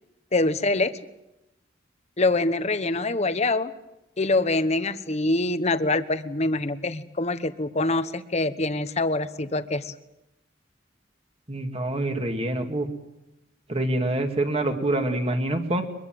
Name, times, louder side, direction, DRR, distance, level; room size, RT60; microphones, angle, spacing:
voice 1, 0.3-0.9 2.2-3.7 4.2-9.9, left 2 dB, 35° left, 11 dB, 1.1 m, -25 dB
voice 2, 11.5-12.9 13.7-15.8, right 1 dB, 30° right, 5 dB, 2.5 m, -26 dB
23.0 x 22.5 x 7.8 m, 0.91 s
head